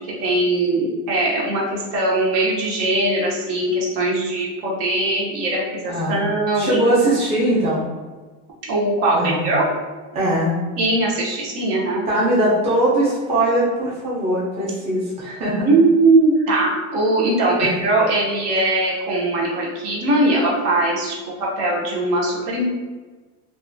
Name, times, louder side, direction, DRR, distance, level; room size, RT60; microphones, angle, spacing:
voice 1, 0.2-6.8 8.7-9.7 10.8-12.1 15.6-22.6, right 2 dB, 60° right, -4 dB, 0.9 m, -20 dB
voice 2, 5.9-6.2 6.5-7.9 9.1-9.5 10.1-10.6 12.1-15.7 17.6-17.7, right 1 dB, 20° right, -8 dB, 0.6 m, -20 dB
2.7 x 2.4 x 2.6 m, 1.3 s
cardioid pair, 160°, 36 cm